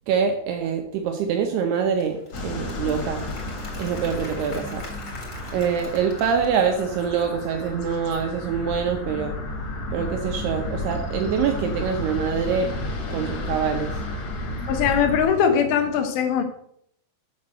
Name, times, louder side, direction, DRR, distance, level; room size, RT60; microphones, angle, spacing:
voice 1, 0.1-2.2 2.4-3.3 3.8-4.8 5.5-9.3 9.9-12.7 13.1-13.9, right 7 dB, 75° right, 4 dB, 2.4 m, -25 dB
Applause / Crowd, 1.7-7.1, left 2 dB, 30° left, 1.5 m, -44 dB
sound 1, 2.3-15.2, left 1 dB, 50° left, 2.2 m, -32 dB
voice 2, 14.7-16.4, left 7 dB, 75° left, 6 dB, 3.1 m, -21 dB
7.9 x 5.8 x 7.6 m, 0.70 s
omnidirectional pair, 5.7 m